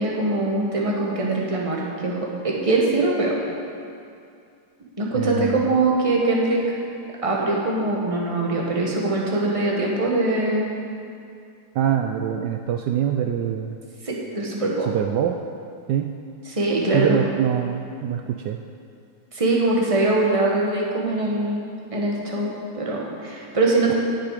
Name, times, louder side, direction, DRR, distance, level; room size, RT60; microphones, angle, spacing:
voice 1, 0.0-2.2 2.4-3.4 5.0-6.6 7.2-10.7 14.0-14.9 16.5-17.3 19.3-21.6 21.9-23.9, right 2 dB, 20° right, -3 dB, 1.5 m, -22 dB
voice 2, 5.1-5.7 11.7-13.8 14.6-15.4 15.9-16.1 16.9-18.6, right 9 dB, 75° right, 5 dB, 1.1 m, -24 dB
17.5 x 6.7 x 5.0 m, 2.5 s
omnidirectional pair, 2.0 m